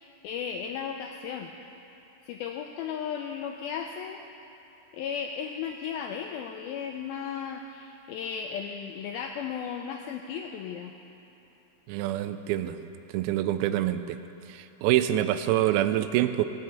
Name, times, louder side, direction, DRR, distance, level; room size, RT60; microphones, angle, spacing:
voice 1, 0.0-1.5 2.2-4.2 4.9-10.9, left 7 dB, 85° left, 3 dB, 2.1 m, -35 dB
voice 2, 11.9-12.8 13.1-14.2 14.5-16.4, right 13 dB, 85° right, 9 dB, 2.2 m, -26 dB
16.0 x 6.6 x 8.7 m, 3.0 s
omnidirectional pair, 4.8 m